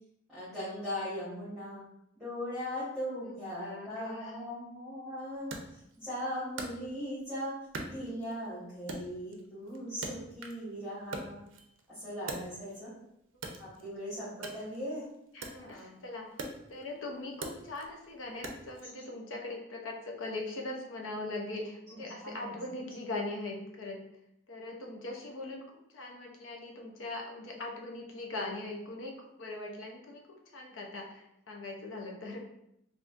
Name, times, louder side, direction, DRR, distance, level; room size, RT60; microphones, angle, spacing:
voice 1, 0.3-1.8 2.2-5.6 6.0-7.5 7.8-11.4 11.9-12.9 13.6-15.0 15.7-15.9 21.9-22.5, equal, ahead, -14 dB, 1.4 m, -39 dB
voice 2, 3.6-4.5 15.3-16.3 16.7-24.0 24.5-25.6 25.9-30.2 30.5-32.4, left 2 dB, 70° left, 1 dB, 0.6 m, -40 dB
Wood, 5.5-7.3 7.7-8.5 8.9-10.7 11.0-12.9 13.3-18.9, right 2 dB, 70° right, 0.5 m, -43 dB
3.5 x 2.6 x 2.5 m, 0.79 s
head